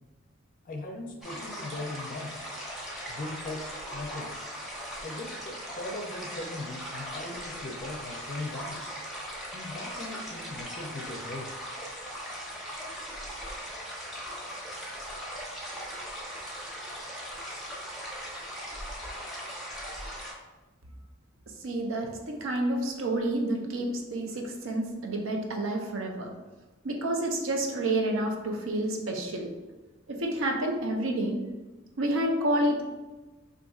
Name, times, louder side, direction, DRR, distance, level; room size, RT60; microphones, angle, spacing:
voice 1, 0.7-2.5 3.1-4.3 5.0-8.8 9.5-11.5, left 2 dB, 45° left, 2 dB, 0.4 m, -39 dB
sound 1, 1.2-20.3, equal, ahead, 0.7 m, -39 dB
voice 2, 21.6-26.3 26.8-29.5 30.1-31.4 32.0-32.8, right 1 dB, 75° right, 2 dB, 0.6 m, -29 dB
4.0 x 2.6 x 2.3 m, 1.2 s
head